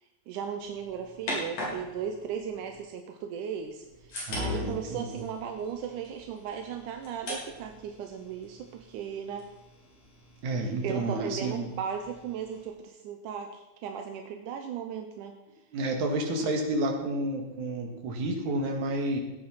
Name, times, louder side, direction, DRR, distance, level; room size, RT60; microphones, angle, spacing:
voice 1, 0.3-9.5 10.6-15.4 16.4-16.6, right 7 dB, 90° right, 5 dB, 2.5 m, -37 dB
sound 1, 0.6-2.8 3.6-12.7, left 1 dB, 60° left, 5.2 m, -41 dB
voice 2, 4.3-5.1 10.4-11.7 15.7-19.2, right 1 dB, 70° right, 3 dB, 3.3 m, -30 dB
16.0 x 9.0 x 5.8 m, 1.0 s
omnidirectional pair, 3.5 m